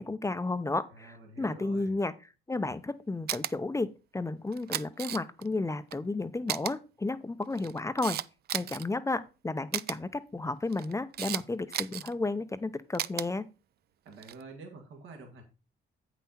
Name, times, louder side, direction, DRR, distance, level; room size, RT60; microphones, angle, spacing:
voice 1, 0.0-2.1 2.5-8.2 8.5-13.4, left 2 dB, 15° left, 12 dB, 0.6 m, -32 dB
voice 2, 0.9-2.0 14.1-15.4, right 3 dB, 80° right, 2 dB, 2.1 m, -48 dB
Camera, 3.3-3.5 4.5-5.5 5.9-6.0 6.5-6.7 7.4-8.8 9.7-10.0 10.7-11.4 11.7-12.1 12.9-13.3 14.1-14.4, right 11 dB, 55° right, 0.4 m, -34 dB
8.2 x 5.8 x 4.2 m, 0.31 s
cardioid pair, 90°, 20 cm